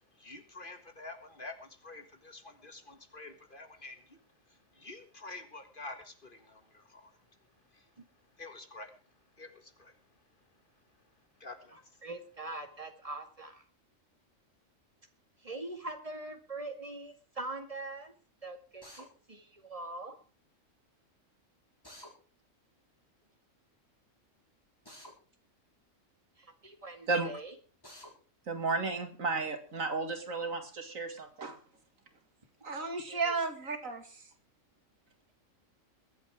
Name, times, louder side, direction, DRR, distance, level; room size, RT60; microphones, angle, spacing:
voice 1, 0.2-4.2 4.8-7.1 8.4-8.9 9.4-9.9 11.4-11.7, left 2 dB, 40° left, 7 dB, 1.9 m, -48 dB
voice 2, 11.7-13.6 15.4-18.1 18.4-20.2 26.4-27.5 33.1-33.3, right 2 dB, 25° right, 6 dB, 2.2 m, -43 dB
Drill, 18.8-19.1 21.8-22.1 24.9-25.1 27.8-28.1, left 1 dB, 15° left, 5.0 m, -50 dB
voice 3, 28.5-31.6 32.6-34.2, right 4 dB, 80° right, 6 dB, 2.6 m, -33 dB
22.5 x 8.3 x 4.9 m, 0.38 s
omnidirectional pair, 1.4 m